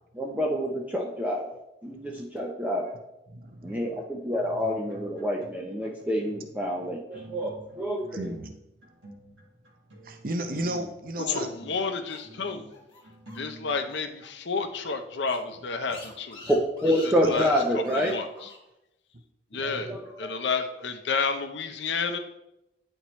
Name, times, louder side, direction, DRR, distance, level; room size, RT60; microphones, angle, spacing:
voice 1, 0.1-2.9 3.6-8.3 16.5-18.5 19.5-20.3, equal, 10° right, -2 dB, 0.5 m, -28 dB
voice 2, 3.3-4.0 5.8-5.9 8.1-8.5 10.0-11.5 17.2-17.5 19.5-20.0, right 1 dB, 45° right, 5 dB, 0.7 m, -35 dB
sound 1, 4.4-5.7 6.0-14.1, right 1 dB, 85° right, 1.7 m, -48 dB
voice 3, 11.3-12.6 13.4-16.4 17.3-17.5 18.1-18.2 19.5-19.9 20.2-22.2, left 5 dB, 70° left, 7 dB, 0.7 m, -30 dB
sound 2, 11.8-14.3 14.5-14.6 14.9-15.0 15.2-18.6, left 3 dB, 25° left, 1.4 m, -46 dB
9.8 x 4.5 x 3.1 m, 0.88 s
head